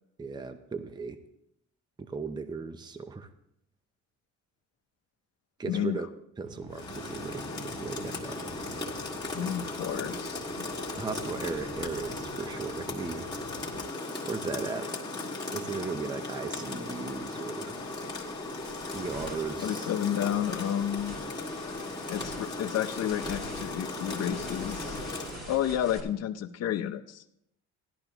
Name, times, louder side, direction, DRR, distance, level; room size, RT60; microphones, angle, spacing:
voice 1, 0.2-1.2 2.0-3.3 5.6-6.1 6.4-8.6 10.9-13.3 14.2-14.9 15.5-17.8 18.9-19.9, right 4 dB, 15° right, 9 dB, 0.6 m, -37 dB
voice 2, 5.6-6.0 9.3-10.6 19.6-21.2 22.1-25.0 25.5-27.2, left 10 dB, 55° left, 8 dB, 0.8 m, -31 dB
sound 1, 6.4-13.8, right 2 dB, 60° right, 3.4 m, -48 dB
Rain, 6.7-25.4, left 2 dB, 15° left, 2.0 m, -37 dB
sound 2, 18.0-26.0, equal, 30° right, 2.8 m, -45 dB
16.0 x 12.0 x 3.0 m, 0.76 s
cardioid pair, 135°, 30 cm